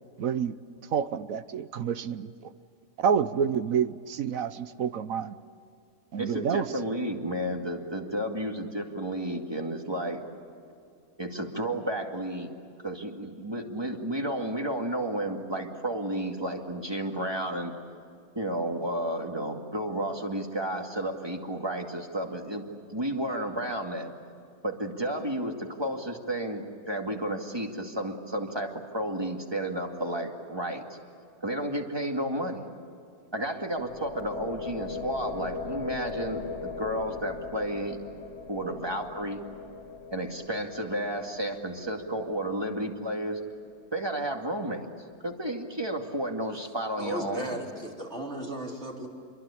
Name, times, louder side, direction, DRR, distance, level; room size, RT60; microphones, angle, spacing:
voice 1, 0.2-0.6 0.9-2.5 3.0-5.4 6.1-6.7, right 7 dB, 65° right, 13 dB, 1.1 m, -28 dB
voice 2, 6.2-10.2 11.2-12.5 12.8-17.7 18.3-24.1 24.6-31.0 31.4-32.7 33.3-38.0 38.5-39.4 40.1-43.4 43.9-44.9 45.2-47.6, right 1 dB, 15° right, 3 dB, 2.3 m, -32 dB
sound 1, 33.7-43.5, left 4 dB, 90° left, 2.5 m, -40 dB
voice 3, 47.0-49.1, right 1 dB, 40° right, -1 dB, 4.3 m, -36 dB
28.0 x 23.0 x 8.6 m, 2.4 s
omnidirectional pair, 1.7 m